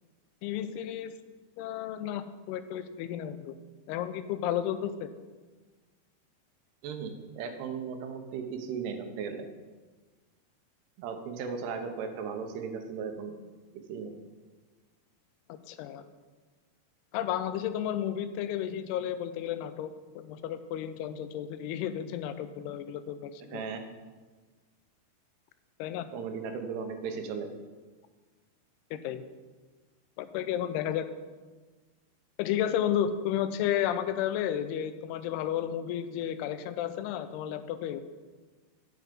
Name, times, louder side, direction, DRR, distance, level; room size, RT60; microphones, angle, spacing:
voice 1, 0.4-1.1 1.6-3.6 3.9-5.1 15.7-16.1 17.1-23.6 25.8-26.1 28.9-29.2 30.2-31.1 32.4-38.0, left 10 dB, 85° left, 11 dB, 2.6 m, -32 dB
voice 2, 6.8-9.5 11.0-13.4 13.9-14.2 23.5-23.8 26.1-27.5, right 6 dB, 85° right, 6 dB, 3.0 m, -36 dB
9.5 x 7.9 x 5.2 m, 1.3 s
omnidirectional pair, 4.6 m